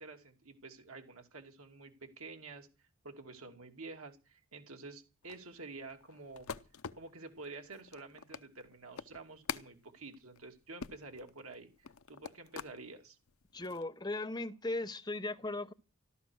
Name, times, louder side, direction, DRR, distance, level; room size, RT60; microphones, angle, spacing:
voice 1, 0.0-2.7 3.0-6.5 6.9-13.2, right 3 dB, 90° right, 2.6 m, -49 dB
sound 1, 5.2-12.8 13.3-13.8, left 6 dB, 80° left, 0.7 m, -46 dB
voice 2, 13.5-15.7, left 2 dB, 20° left, 0.9 m, -37 dB
14.0 x 13.0 x 6.3 m
head